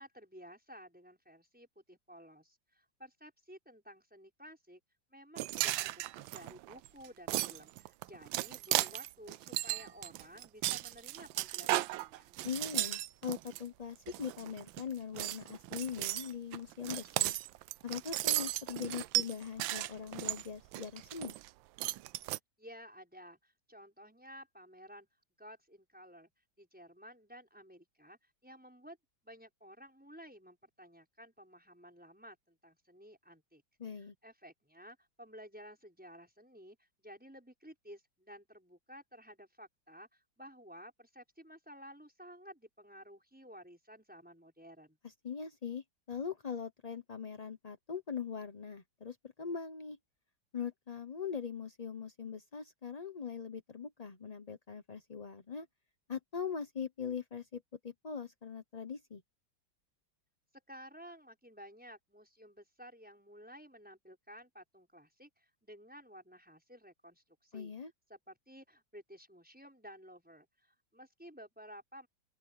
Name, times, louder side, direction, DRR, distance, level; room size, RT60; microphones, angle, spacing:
voice 1, 0.0-4.8 5.1-12.3 22.6-25.1 25.4-26.3 26.6-29.0 29.2-33.6 34.0-45.0 60.7-67.7 68.1-72.1, equal, 5° right, 5.9 m, -54 dB
sound 1, 5.4-13.6 14.1-14.8 15.1-21.5 21.8-22.4, right 16 dB, 85° right, 1.3 m, -35 dB
voice 2, 12.4-17.3 17.8-21.3 33.8-34.1 45.0-50.0 50.5-55.7 56.1-59.2 67.5-67.9, left 6 dB, 40° left, 0.5 m, -41 dB
open air
omnidirectional pair, 2.1 m